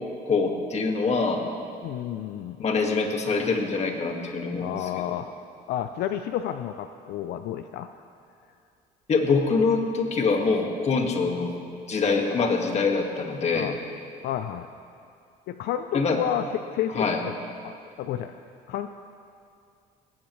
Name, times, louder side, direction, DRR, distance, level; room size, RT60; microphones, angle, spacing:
voice 1, 0.2-1.4 2.6-5.1 9.1-11.5 11.9-13.7 15.9-16.2 17.0-17.2, left 4 dB, 40° left, 2 dB, 1.8 m, -24 dB
voice 2, 1.8-2.6 4.6-5.3 5.7-7.9 12.4-12.5 13.5-13.8 14.2-14.7 15.5-16.5 16.7-17.3 17.6-17.7 18.0-18.4 18.7-18.9, left 11 dB, 75° left, 9 dB, 0.5 m, -30 dB
19.5 x 16.5 x 3.2 m, 2.4 s
cardioid pair, 110°, 17 cm